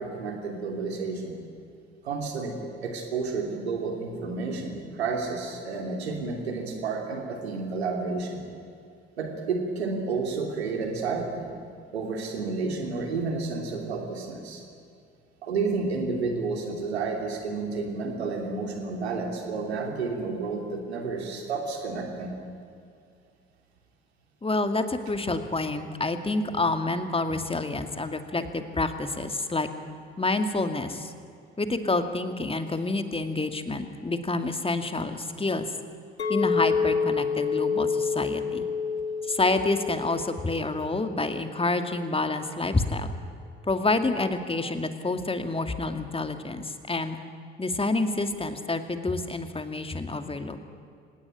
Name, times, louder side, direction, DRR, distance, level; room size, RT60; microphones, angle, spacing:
voice 1, 0.0-1.4 2.0-2.5 2.8-8.4 9.2-11.5 11.9-14.6 15.4-22.3, right 4 dB, 80° right, 2 dB, 3.0 m, -31 dB
voice 2, 24.4-29.7 30.2-31.1 31.6-35.7 36.3-38.7 39.3-43.1 43.6-47.2 47.6-50.6, left 2 dB, 15° left, 8 dB, 2.3 m, -28 dB
Chink clink, 36.2-40.5 40.9-41.3, left 5 dB, 85° left, 0.9 m, -28 dB
25.0 x 18.5 x 10.0 m, 2.4 s
figure-of-eight pair, 50°, 32 cm